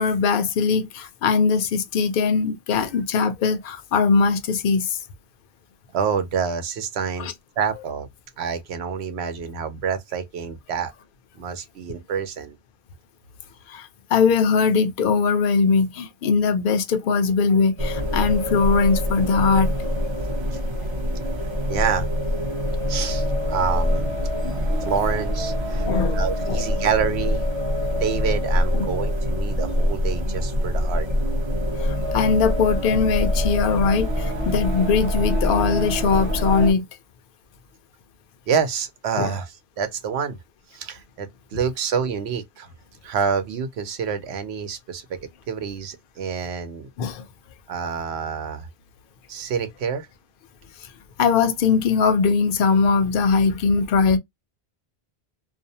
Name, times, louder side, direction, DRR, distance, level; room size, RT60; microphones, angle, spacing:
voice 1, 0.0-5.0 7.2-7.3 13.7-19.7 24.4-24.9 25.9-26.2 26.5-26.6 28.7-28.9 31.8-36.8 39.2-39.3 47.0-47.2 51.2-54.2, left 5 dB, 60° left, 0.7 m, -21 dB
voice 2, 5.9-8.1 8.4-10.9 11.4-12.6 21.7-22.1 22.9-24.1 24.8-25.9 26.1-27.4 28.0-31.1 38.5-40.4 40.7-42.7 43.0-45.2 45.5-46.9 47.7-48.7 49.3-50.1, right 6 dB, 80° right, 0.9 m, -27 dB
sound 1, 17.8-36.7, left 1 dB, 30° right, 0.6 m, -24 dB
2.6 x 2.0 x 2.6 m
omnidirectional pair, 1.1 m